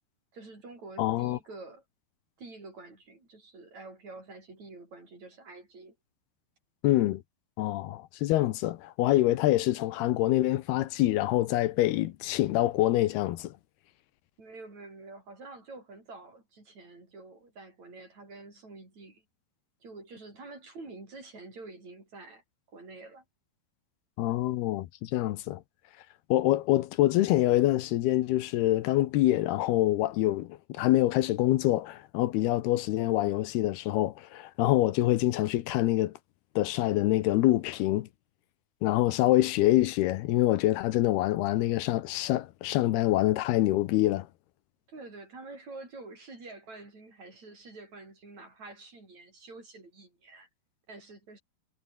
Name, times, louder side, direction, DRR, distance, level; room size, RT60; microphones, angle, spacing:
voice 1, 0.3-1.8 2.4-6.0 14.4-19.2 19.8-22.4 22.7-23.2 44.9-50.5 50.9-51.4, right 3 dB, 45° right, 9.2 m, -47 dB
voice 2, 1.0-1.4 6.8-7.2 7.6-13.5 24.2-25.6 26.3-36.1 36.6-38.1 38.8-44.3, left 15 dB, 80° left, 2.9 m, -25 dB
omnidirectional pair, 4.6 m